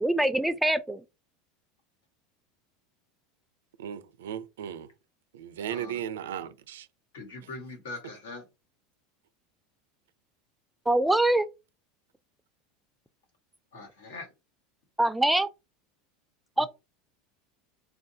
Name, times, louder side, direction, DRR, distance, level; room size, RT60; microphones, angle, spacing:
voice 1, 0.0-1.0 10.9-11.5 15.0-15.5 16.6-16.7, right 1 dB, 5° right, 0.4 m, -24 dB
voice 2, 3.8-4.9 5.3-6.9, right 9 dB, 90° right, 0.4 m, -36 dB
voice 3, 5.7-6.0 7.1-8.5 13.7-14.3 16.6-16.7, left 3 dB, 85° left, 1.4 m, -42 dB
4.3 x 2.3 x 2.7 m
supercardioid pair, 115°, 0 cm